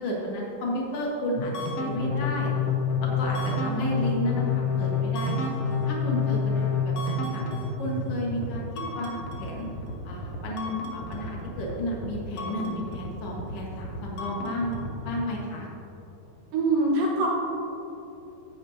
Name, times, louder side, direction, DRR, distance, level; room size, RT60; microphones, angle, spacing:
voice 1, 0.0-2.5 3.2-5.5 5.8-7.4 7.8-8.6 8.9-9.6 10.0-14.7 15.1-15.7, left 1 dB, 50° left, -3 dB, 2.1 m, -32 dB
sound 1, 1.4-15.2, left 4 dB, 90° left, 1.3 m, -29 dB
voice 2, 16.5-17.3, right 2 dB, 65° right, -3 dB, 2.8 m, -23 dB
13.0 x 8.6 x 2.9 m, 3.0 s
omnidirectional pair, 4.5 m